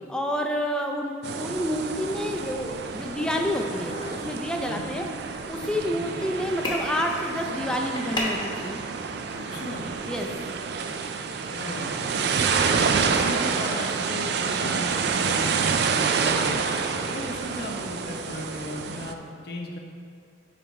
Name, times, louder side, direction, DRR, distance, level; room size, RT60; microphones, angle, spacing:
voice 1, 0.1-4.0 4.2-5.1 5.5-8.8 10.0-10.3, equal, 5° left, 1 dB, 0.5 m, -29 dB
sound 1, 1.2-19.1, right 5 dB, 60° right, 0.4 m, -28 dB
sound 2, 1.9-10.6, left 1 dB, 25° left, 0.9 m, -38 dB
voice 2, 9.3-9.9 11.5-16.6 17.1-19.8, left 1 dB, 55° left, 0 dB, 0.7 m, -36 dB
10.5 x 3.4 x 4.1 m, 2.3 s
head